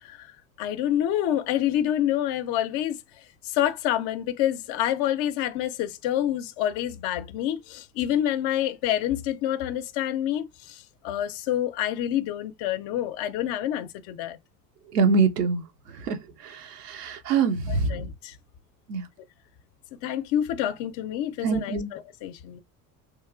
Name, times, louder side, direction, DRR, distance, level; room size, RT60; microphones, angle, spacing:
voice 1, 0.0-3.0 3.4-14.4 17.7-18.4 20.0-22.6, left 11 dB, 55° left, 0.5 m, -27 dB
voice 2, 14.9-15.6 16.0-17.9 18.9-19.0 21.4-21.9, right 4 dB, 85° right, 0.7 m, -24 dB
3.1 x 2.9 x 2.3 m
hypercardioid pair, 70°, 46 cm